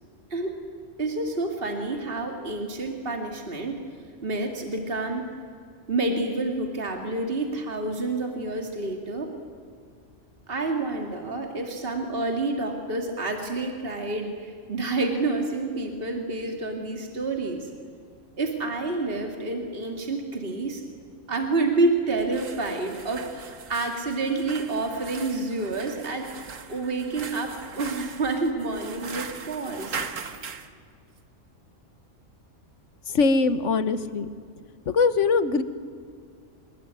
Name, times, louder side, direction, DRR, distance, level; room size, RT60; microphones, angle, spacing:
voice 1, 1.0-3.8 4.2-5.2 5.9-9.3 10.5-17.7 18.4-20.8 21.3-26.3 26.7-30.0, right 2 dB, 45° right, 3 dB, 2.5 m, -28 dB
sound 1, 22.1-30.7, right 6 dB, 80° right, 1.7 m, -39 dB
voice 2, 33.1-34.3 34.9-35.6, left 4 dB, 70° left, 13 dB, 1.5 m, -22 dB
26.5 x 21.0 x 9.7 m, 2.2 s
omnidirectional pair, 1.3 m